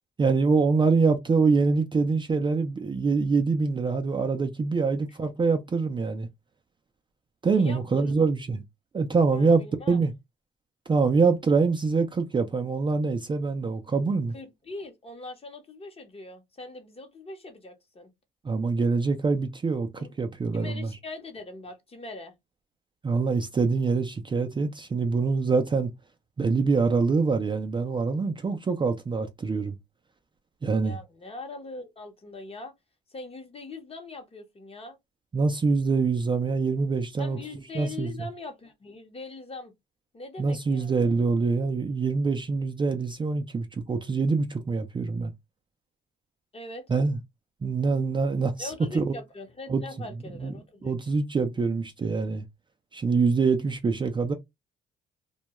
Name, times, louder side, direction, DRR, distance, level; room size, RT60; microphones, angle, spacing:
voice 1, 0.2-6.3 7.4-8.6 8.9-10.1 10.9-14.3 18.4-20.9 23.0-25.9 26.4-29.8 30.6-31.0 35.3-37.4 37.7-38.1 40.4-45.3 46.9-47.2 47.6-49.2 49.7-49.8 50.4-50.5 50.8-52.5 52.9-54.3, right 4 dB, 25° right, 0.4 m, -25 dB
voice 2, 7.6-8.3 9.3-10.0 14.3-18.1 19.9-20.1 20.5-22.3 30.8-32.7 33.1-35.0 37.2-39.7 40.1-41.2 46.5-46.9 48.6-50.9, left 2 dB, 30° left, 0.8 m, -41 dB
2.2 x 2.1 x 2.9 m
cardioid pair, 90°, 20 cm